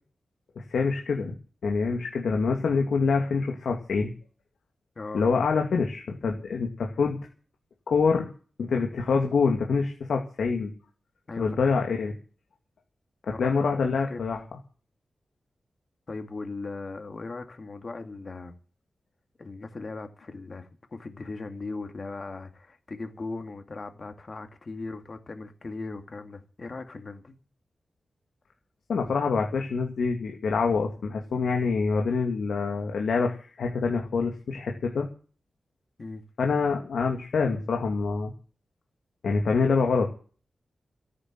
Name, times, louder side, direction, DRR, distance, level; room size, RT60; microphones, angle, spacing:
voice 1, 0.7-1.3 1.6-4.1 5.1-7.2 7.9-8.3 8.6-10.7 11.4-12.1 13.2-14.4 28.9-35.1 36.4-38.3 39.2-40.1, left 4 dB, 90° left, 2.5 m, -26 dB
voice 2, 13.3-14.2 16.1-18.6 19.4-27.4 36.0-36.2, left 3 dB, 40° left, 2.3 m, -38 dB
14.0 x 9.4 x 7.7 m
wide cardioid pair, 140°, 0 cm